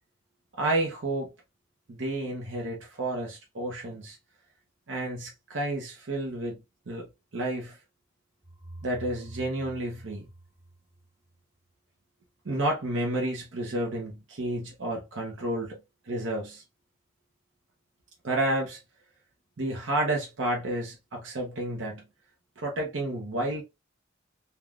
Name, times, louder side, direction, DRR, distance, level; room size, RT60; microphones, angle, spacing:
voice 1, 0.6-1.3 1.9-4.2 4.9-6.6 6.9-7.1 7.3-7.8 8.8-10.3 12.4-15.8 16.0-16.6 18.2-18.8 19.6-22.0 22.6-23.6, right 1 dB, 75° right, 0.7 m, -30 dB
sound 1, 8.4-11.3, right 1 dB, 15° right, 0.4 m, -46 dB
3.4 x 2.2 x 2.3 m
head